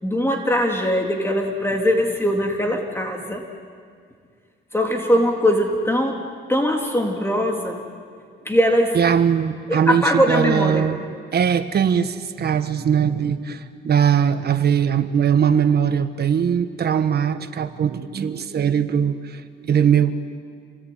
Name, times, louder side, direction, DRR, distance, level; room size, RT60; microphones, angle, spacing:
voice 1, 0.0-3.4 4.7-7.8 8.4-9.0 9.7-10.8, equal, 10° left, 2 dB, 3.0 m, -21 dB
voice 2, 8.9-11.0 11.3-20.1, right 8 dB, 55° right, 11 dB, 1.5 m, -20 dB
28.5 x 19.5 x 9.4 m, 2.1 s
cardioid pair, 90°, 20 cm